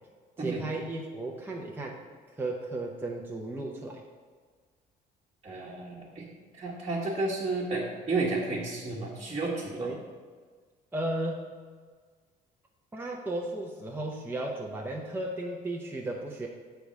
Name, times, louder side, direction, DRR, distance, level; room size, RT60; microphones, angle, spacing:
voice 1, 0.4-2.0 2.3-4.0 9.8-10.0 10.9-11.5 12.9-16.5, right 2 dB, 10° right, -1 dB, 0.7 m, -34 dB
voice 2, 5.4-6.3 6.6-9.9, right 3 dB, 30° right, -7 dB, 1.3 m, -32 dB
6.9 x 3.5 x 6.2 m, 1.5 s
cardioid pair, 110°, 17 cm